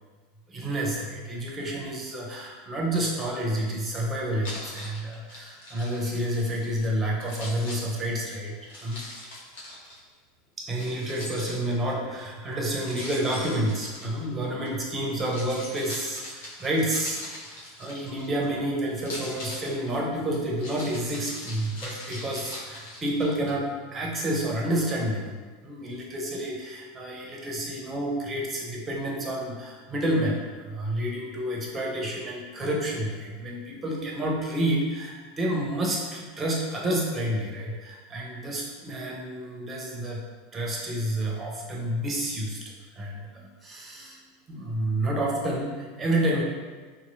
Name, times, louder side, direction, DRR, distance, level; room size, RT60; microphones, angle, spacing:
voice 1, 0.5-9.0 10.6-17.2 17.8-25.4 25.6-40.2 40.5-42.6 42.9-44.2 44.5-46.4, right 1 dB, 25° right, -2 dB, 0.7 m, -29 dB
Keys jangling, 4.4-6.9 7.2-10.0 10.7-12.0 12.8-14.7 15.1-18.5 19.0-23.5, left 1 dB, 65° left, 0.8 m, -41 dB
2.9 x 2.7 x 2.6 m, 1.4 s
figure-of-eight pair, 80°, 0 cm